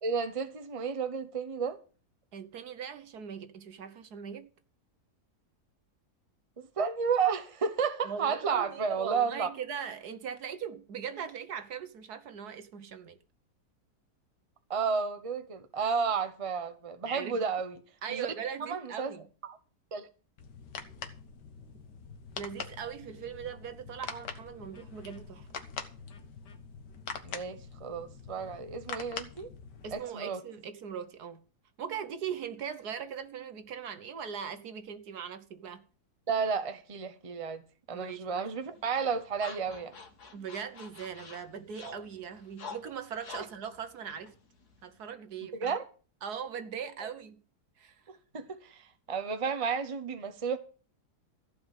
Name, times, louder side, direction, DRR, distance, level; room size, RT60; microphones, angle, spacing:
voice 1, 0.0-1.8 6.6-9.5 14.7-17.8 18.1-18.3 18.7-19.1 19.4-19.6 19.9-20.1 27.2-29.5 29.9-30.4 36.3-37.6 37.9-39.9 41.8-41.9 45.5-45.8 48.1-50.6, right 6 dB, 25° right, 1.0 m, -32 dB
voice 2, 2.3-4.5 8.0-13.2 17.1-17.4 18.0-19.3 22.4-25.6 29.8-31.4 31.8-35.8 37.9-38.5 40.3-44.4 44.8-45.8 46.2-47.4 47.8-48.0, right 7 dB, 70° right, 1.6 m, -40 dB
sound 1, 20.4-30.0, left 6 dB, 85° left, 1.9 m, -44 dB
sound 2, 38.6-45.1, left 4 dB, 65° left, 2.5 m, -49 dB
14.5 x 5.1 x 9.3 m
omnidirectional pair, 1.8 m